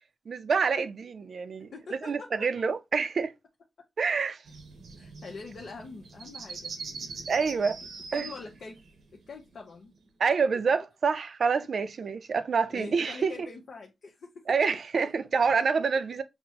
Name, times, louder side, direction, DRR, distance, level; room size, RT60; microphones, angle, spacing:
voice 1, 0.3-3.3 4.0-4.4 7.3-7.8 8.1-8.3 10.2-13.5 14.5-16.2, right 5 dB, 65° right, 0.4 m, -27 dB
voice 2, 1.7-2.5 5.0-6.7 7.4-7.7 8.1-8.8 9.1-9.9 12.7-14.4 15.5-15.6, left 4 dB, 65° left, 0.7 m, -44 dB
sound 1, 4.5-10.0, right 4 dB, 85° right, 0.8 m, -43 dB
5.9 x 2.1 x 2.8 m
wide cardioid pair, 100°, 0 cm